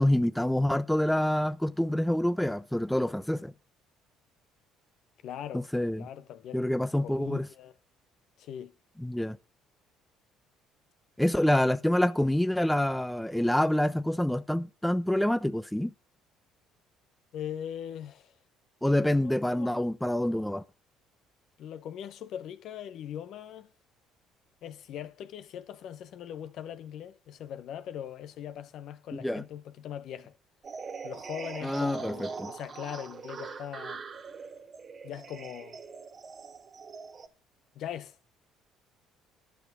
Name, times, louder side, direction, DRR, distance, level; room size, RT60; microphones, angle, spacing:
voice 1, 0.0-3.5 5.5-6.1 6.5-7.5 9.0-9.4 11.2-15.9 18.8-20.6 29.1-29.4 31.6-32.5, left 1 dB, 5° left, 0.6 m, -27 dB
voice 2, 5.2-5.7 6.0-7.7 8.4-8.7 17.3-18.3 19.1-19.7 21.6-23.7 24.6-30.3 31.0-34.0 35.0-35.8 37.7-38.2, left 10 dB, 65° left, 1.0 m, -41 dB
sound 1, 30.6-37.3, right 5 dB, 40° right, 1.3 m, -42 dB
11.5 x 6.2 x 6.8 m
supercardioid pair, 90°, 0 cm